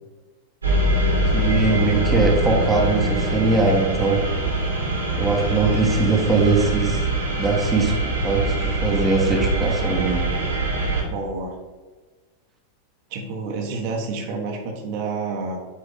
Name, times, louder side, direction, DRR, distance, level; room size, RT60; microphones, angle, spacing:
sound 1, 0.6-11.0, right 2 dB, 80° right, 1.9 m, -23 dB
voice 1, 1.3-4.2 5.2-7.0 7.4-7.9 8.2-10.3, right 3 dB, 10° right, -1 dB, 1.2 m, -21 dB
voice 2, 11.1-11.6 13.1-15.6, right 4 dB, 45° right, 1 dB, 1.1 m, -29 dB
8.7 x 3.9 x 3.5 m, 1.3 s
figure-of-eight pair, 90°, 0 cm